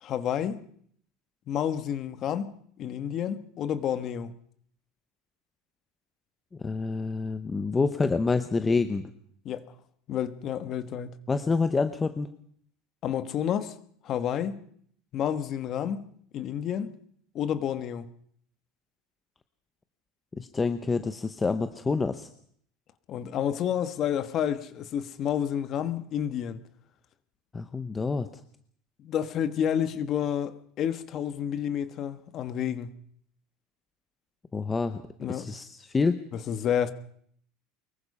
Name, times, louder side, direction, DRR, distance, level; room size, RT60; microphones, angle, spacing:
voice 1, 0.0-0.6 1.5-2.5 2.8-4.3 9.4-9.7 10.1-11.2 13.0-13.7 14.0-14.6 15.1-16.0 16.3-16.9 17.3-18.1 23.1-26.6 29.0-32.9 35.2-35.5 36.3-36.9, left 9 dB, 30° left, 1.4 m, -30 dB
voice 2, 6.6-9.1 11.3-12.3 20.4-22.3 27.5-28.3 34.5-35.0 35.3-36.2, left 4 dB, 10° left, 0.8 m, -27 dB
24.0 x 22.0 x 5.5 m
cardioid pair, 175°, 0 cm